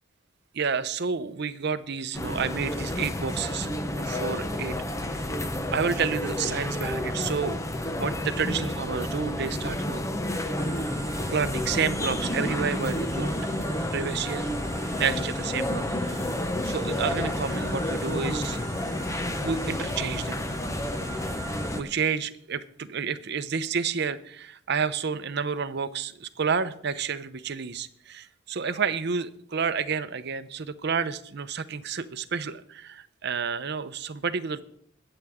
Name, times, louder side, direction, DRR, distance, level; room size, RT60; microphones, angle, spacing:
voice 1, 0.5-4.7 5.0-5.3 5.7-7.6 8.0-10.0 10.3-10.5 11.3-13.4 13.9-14.5 15.0-16.3 16.6-18.6 19.1-20.4 21.8-34.6, right 6 dB, 60° right, 12 dB, 0.7 m, -30 dB
sound 1, 2.1-21.8, left 1 dB, 15° left, 0.8 m, -30 dB
sound 2, 10.5-21.8, right 3 dB, 15° right, 1.6 m, -44 dB
21.5 x 8.0 x 3.6 m, 0.67 s
head